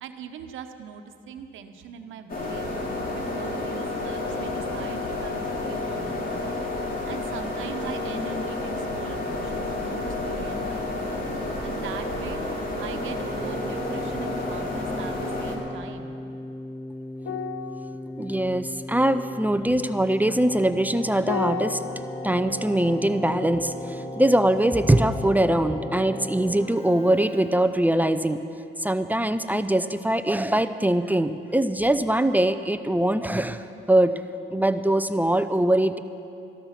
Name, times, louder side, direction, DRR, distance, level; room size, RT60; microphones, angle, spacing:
voice 1, 0.0-2.7 3.1-6.6 7.1-11.2 11.6-12.4 12.8-16.2, right 7 dB, 80° right, 7 dB, 1.0 m, -41 dB
sound 1, 2.3-15.6, left 2 dB, 45° left, 2.8 m, -30 dB
Keyboard (musical), 13.0-28.1, left 1 dB, 30° left, 1.2 m, -37 dB
sound 2, 17.2-25.9 26.2-26.4, left 6 dB, 90° left, 0.7 m, -38 dB
voice 2, 18.2-21.8 22.2-28.4 28.8-34.2 34.5-36.0, right 1 dB, 10° right, 11 dB, 0.5 m, -22 dB
13.5 x 13.0 x 5.8 m, 2.7 s
cardioid pair, 90°, 20 cm